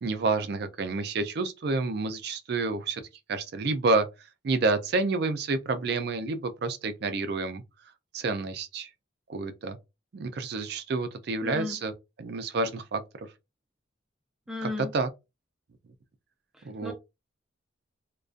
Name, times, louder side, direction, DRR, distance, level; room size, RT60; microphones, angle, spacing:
voice 1, 0.0-3.0 3.3-4.1 4.4-7.6 8.1-8.9 9.3-9.8 10.1-11.9 12.2-13.0 14.6-15.1 16.6-16.9, right 3 dB, 55° right, 0.4 m, -29 dB
voice 2, 11.4-11.8 14.5-14.9 16.5-16.9, left 2 dB, 5° right, 0.5 m, -35 dB
2.4 x 2.2 x 2.4 m
head